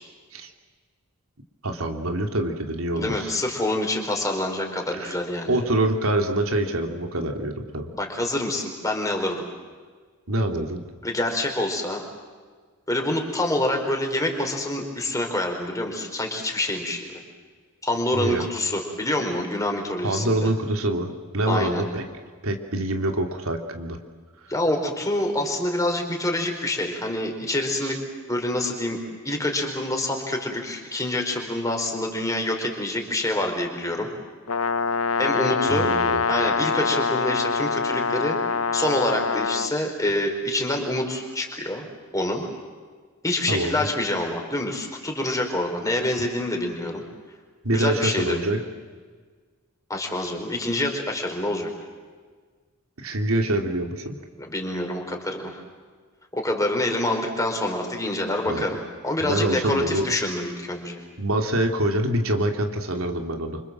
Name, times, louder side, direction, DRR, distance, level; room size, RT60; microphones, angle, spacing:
voice 1, 1.6-3.3 4.9-5.2 5.5-7.9 10.3-10.8 18.1-18.5 20.0-22.0 22.4-24.0 27.8-27.9 35.7-36.2 43.5-43.9 47.6-48.6 53.0-54.2 58.5-58.6 59.2-60.1 61.2-63.6, right 1 dB, 85° right, 4 dB, 2.9 m, -25 dB
voice 2, 3.0-5.5 7.9-9.4 11.0-12.0 12.9-17.2 17.8-20.5 21.5-21.8 24.5-28.0 28.3-29.0 29.2-34.1 35.2-35.9 36.3-41.9 42.1-42.4 43.2-47.0 47.7-48.4 49.9-51.7 54.4-55.6 56.3-58.8 59.0-61.0, left 1 dB, 15° left, 2 dB, 4.6 m, -26 dB
Brass instrument, 34.5-39.7, left 5 dB, 80° left, 0.8 m, -24 dB
28.0 x 26.0 x 7.6 m, 1.5 s
head